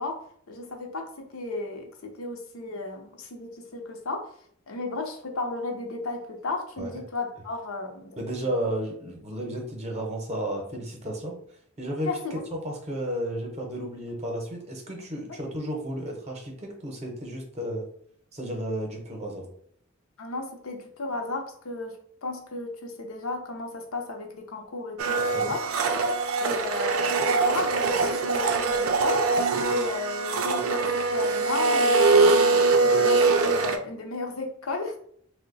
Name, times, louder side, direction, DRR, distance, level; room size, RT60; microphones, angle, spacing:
voice 1, 0.0-4.3 4.7-8.2 12.0-12.4 15.3-15.4 20.2-22.0 22.2-25.6 26.4-29.3 29.6-35.0, left 2 dB, 85° left, 2 dB, 0.7 m, -34 dB
voice 2, 8.2-11.4 11.8-12.1 12.5-17.9 18.3-19.5 25.3-25.5, right 1 dB, 30° right, 1 dB, 0.7 m, -33 dB
Domestic sounds home sounds, 25.0-33.8, right 3 dB, 80° right, 0.4 m, -23 dB
2.7 x 2.1 x 3.9 m, 0.62 s
head